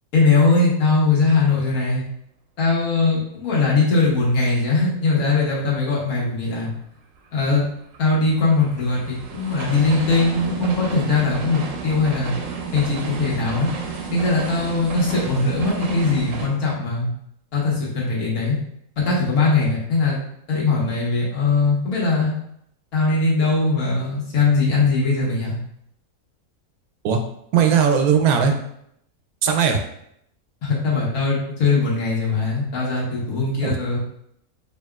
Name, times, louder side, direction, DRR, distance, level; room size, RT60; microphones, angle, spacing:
voice 1, 0.1-2.0 2.6-6.7 7.3-7.6 8.0-12.3 12.7-13.7 14.1-17.1 17.5-18.6 19.0-20.2 20.5-22.3 22.9-25.6 30.6-34.0, left 3 dB, 80° left, -5 dB, 1.7 m, -20 dB
sound 1, 7.2-16.5, right 5 dB, 70° right, 1.0 m, -32 dB
voice 2, 27.5-28.5 29.4-29.8 33.6-33.7, right 7 dB, 90° right, 5 dB, 1.1 m, -18 dB
4.3 x 3.4 x 2.4 m, 0.73 s
omnidirectional pair, 1.5 m